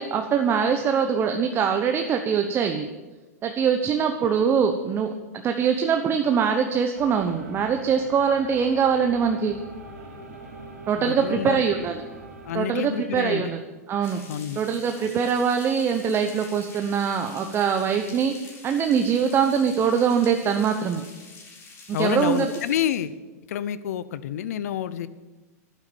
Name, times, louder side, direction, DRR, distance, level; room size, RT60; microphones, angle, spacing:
voice 1, 0.0-2.9 3.4-5.1 5.4-9.6 10.9-12.0 12.5-13.6 13.9-14.2 14.6-21.0 21.9-22.5, right 7 dB, 25° right, 5 dB, 1.0 m, -23 dB
sound 1, 6.9-12.8, right 2 dB, 80° right, 3.3 m, -43 dB
voice 2, 10.9-11.6 12.4-13.5 14.3-14.6 21.9-23.1 23.5-25.1, left 10 dB, 65° left, 16 dB, 0.7 m, -28 dB
sound 2, 14.0-23.0, left 3 dB, 30° left, 3.6 m, -46 dB
11.5 x 9.8 x 7.2 m, 1.2 s
hypercardioid pair, 115°, 9 cm